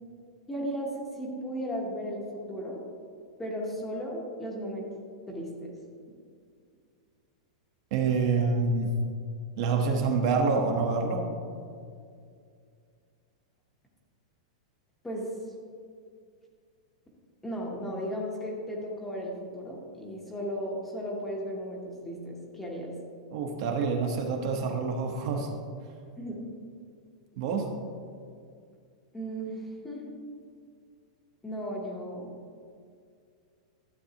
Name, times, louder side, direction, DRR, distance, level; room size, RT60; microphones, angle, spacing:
voice 1, 0.5-2.8 3.4-4.9 5.3-5.7 15.0-15.3 17.4-22.9 26.2-26.5 29.1-30.0 31.4-32.3, equal, 5° left, -2 dB, 0.9 m, -35 dB
voice 2, 7.9-8.9 9.6-11.2 23.3-25.5 27.4-27.7, right 4 dB, 40° right, 2 dB, 0.9 m, -27 dB
12.0 x 7.5 x 2.9 m, 2.3 s
supercardioid pair, 175°, 4 cm